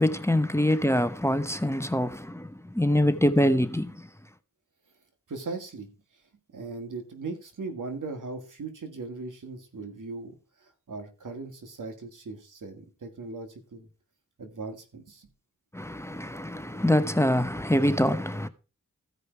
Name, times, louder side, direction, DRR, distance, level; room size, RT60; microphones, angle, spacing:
voice 1, 0.0-4.1 15.7-18.5, left 1 dB, 10° left, 0.9 m, -25 dB
voice 2, 5.3-5.9 6.5-13.9 14.4-15.3, right 3 dB, 80° right, 1.9 m, -39 dB
15.0 x 5.2 x 4.4 m
cardioid pair, 50°, 31 cm